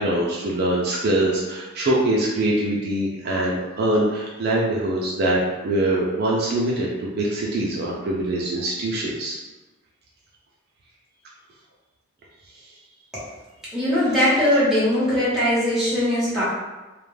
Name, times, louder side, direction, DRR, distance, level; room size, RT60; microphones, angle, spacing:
voice 1, 0.0-9.4, right 1 dB, 50° right, -4 dB, 0.4 m, -23 dB
voice 2, 13.7-16.4, left 1 dB, ahead, -11 dB, 0.9 m, -20 dB
2.4 x 2.1 x 3.1 m, 1.2 s
head